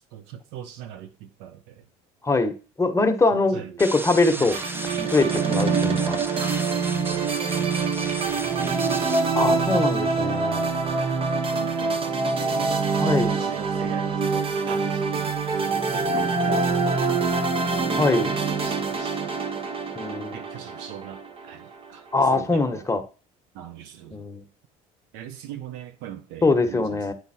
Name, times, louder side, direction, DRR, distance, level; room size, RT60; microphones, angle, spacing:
voice 1, 0.1-1.8 3.3-3.8 4.4-4.5 6.4-9.1 10.8-12.8 13.3-17.6 18.6-19.3 20.3-22.0 22.3-22.9 23.5-24.2 25.1-27.1, right 10 dB, 80° right, 1.1 m, -41 dB
voice 2, 2.2-4.6 5.1-6.2 9.3-10.7 13.0-13.4 18.0-18.3 19.9-20.4 22.1-23.0 24.1-24.4 26.4-27.1, left 3 dB, 15° left, 1.4 m, -22 dB
sound 1, 3.8-9.2, right 1 dB, 10° right, 0.7 m, -36 dB
sound 2, 4.5-21.9, right 4 dB, 35° right, 1.3 m, -25 dB
9.9 x 3.9 x 4.4 m
supercardioid pair, 80°, 17 cm